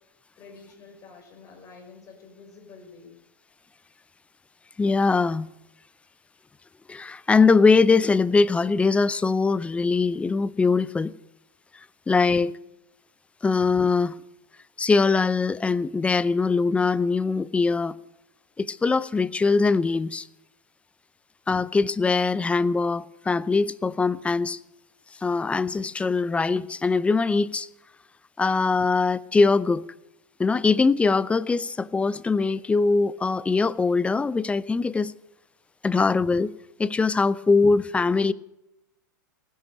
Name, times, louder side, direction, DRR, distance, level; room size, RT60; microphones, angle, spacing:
voice 1, 0.4-3.2, left 4 dB, 30° left, 5.6 m, -48 dB
voice 2, 4.8-5.5 6.9-11.1 12.1-12.5 13.4-14.2 14.8-18.0 18.6-20.3 21.5-24.6 25.2-27.7 28.4-29.8 30.4-35.1 35.8-36.5 36.8-38.3, left 4 dB, 10° left, 0.5 m, -22 dB
16.0 x 10.5 x 8.4 m
hypercardioid pair, 95°, 11 cm